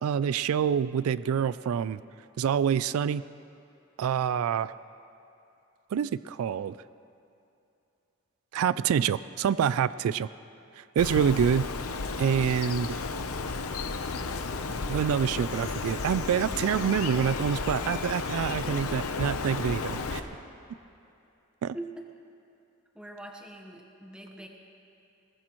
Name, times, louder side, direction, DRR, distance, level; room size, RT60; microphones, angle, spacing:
voice 1, 0.0-2.0 2.4-3.2 4.0-4.7 5.9-6.7 8.5-10.3 10.8-11.7 12.2-13.0 14.9-20.2 21.6-21.8, right 8 dB, 80° right, 17 dB, 0.3 m, -26 dB
Bird, 11.0-20.2, left 4 dB, 85° left, 0.8 m, -33 dB
voice 2, 21.7-22.1 22.9-24.5, right 1 dB, 5° right, 1 dB, 1.0 m, -42 dB
21.0 x 18.5 x 3.0 m, 2.7 s
head